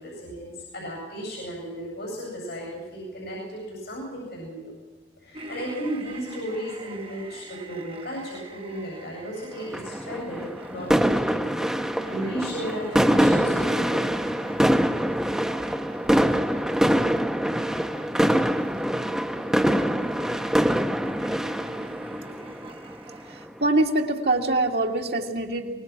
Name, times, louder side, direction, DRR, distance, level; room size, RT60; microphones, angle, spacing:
voice 1, 0.0-4.7 5.2-11.5 11.7-14.1, equal, 70° left, -2 dB, 7.9 m, -35 dB
sound 1, 5.3-23.5, right 2 dB, 30° right, 1.3 m, -44 dB
sound 2, 9.7-23.3, equal, 5° right, 0.9 m, -24 dB
voice 2, 23.3-25.8, right 2 dB, 65° right, 2 dB, 2.3 m, -24 dB
24.0 x 20.0 x 6.1 m, 1.4 s
head